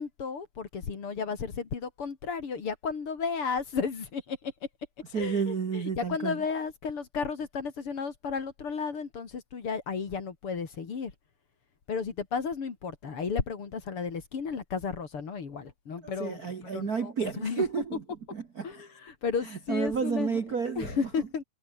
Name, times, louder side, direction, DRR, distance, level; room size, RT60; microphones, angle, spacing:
voice 1, 0.0-4.5 5.1-11.1 11.9-17.6 18.6-20.4 20.8-21.4, left 5 dB, 45° left, 3.1 m, -33 dB
voice 2, 5.1-6.4 16.0-18.0 18.3-18.7 19.7-21.0, right 6 dB, 45° right, 1.3 m, -31 dB
omnidirectional pair, 3.8 m